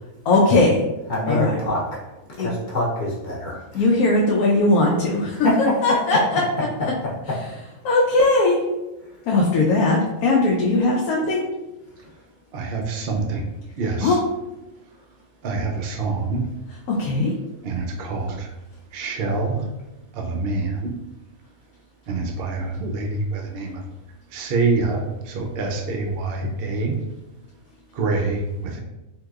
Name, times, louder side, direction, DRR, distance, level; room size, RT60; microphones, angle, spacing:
voice 1, 0.3-0.8 1.3-1.6 2.4-2.5 3.7-5.2 5.8-6.4 6.8-6.9 7.8-8.6 9.3-11.4 14.0-14.2 17.0-17.3, left 2 dB, 85° left, -2 dB, 1.1 m, -19 dB
voice 2, 1.1-3.8 5.4-6.2 7.0-7.4, left 1 dB, 50° left, -5 dB, 0.6 m, -25 dB
voice 3, 12.5-13.4 13.7-14.2 15.4-16.4 17.6-18.5 18.9-19.7 20.1-20.9 22.1-23.8 24.3-27.0 27.9-28.8, right 3 dB, 65° right, 2 dB, 0.6 m, -26 dB
3.7 x 2.8 x 2.3 m, 1.0 s
omnidirectional pair, 1.5 m